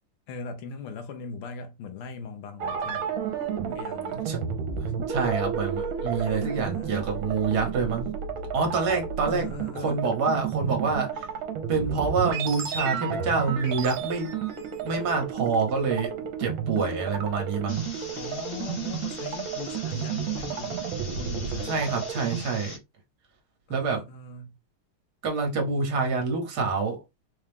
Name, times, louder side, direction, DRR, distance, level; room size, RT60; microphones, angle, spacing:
voice 1, 0.3-3.1 3.7-4.2 6.2-7.2 9.3-10.1 17.0-17.2 18.2-20.9 21.2-22.0 23.7-24.6, left 5 dB, 90° left, 1.7 m, -40 dB
sound 1, 2.6-22.4, right 7 dB, 75° right, 1.5 m, -32 dB
voice 2, 4.8-8.1 8.5-9.5 9.8-11.2 11.7-14.3 14.8-17.8 21.6-22.8 23.7-24.0 25.2-27.0, right 4 dB, 55° right, 1.5 m, -27 dB
sound 2, 17.7-22.8, left 3 dB, 50° left, 1.3 m, -42 dB
4.3 x 2.4 x 3.4 m
omnidirectional pair, 2.3 m